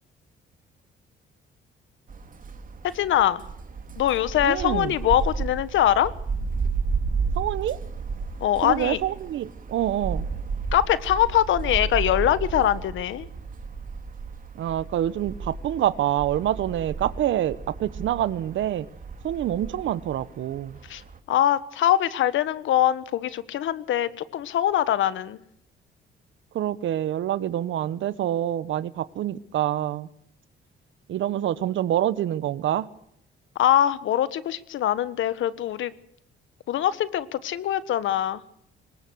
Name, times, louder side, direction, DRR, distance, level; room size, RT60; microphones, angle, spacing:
sound 1, 2.1-21.2, right 4 dB, 45° right, 2.5 m, -33 dB
voice 1, 2.9-3.4 4.0-6.1 8.4-9.0 10.7-13.3 20.9-21.0 21.3-25.4 33.6-35.9 36.7-38.4, left 11 dB, 80° left, 15 dB, 1.5 m, -23 dB
voice 2, 4.4-5.0 7.4-7.8 8.6-10.3 14.5-18.9 19.2-20.8 26.5-30.1 31.1-32.9, right 12 dB, 75° right, 17 dB, 1.2 m, -26 dB
21.5 x 19.5 x 6.4 m, 0.74 s
cardioid pair, 90°, 20 cm